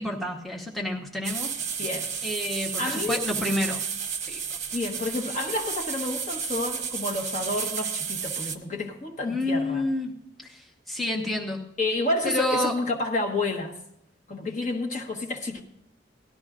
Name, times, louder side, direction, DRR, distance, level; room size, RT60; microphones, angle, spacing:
voice 1, 0.0-1.6 2.2-3.8 4.3-4.4 9.2-10.1 10.4-11.6 12.2-12.7, left 1 dB, ahead, 1.0 m, -29 dB
sound 1, 1.2-8.6, right 7 dB, 40° right, 1.0 m, -32 dB
voice 2, 1.8-2.1 2.8-3.2 4.7-9.8 11.8-13.8 14.3-15.6, left 2 dB, 40° left, 1.4 m, -29 dB
18.0 x 12.0 x 2.5 m
head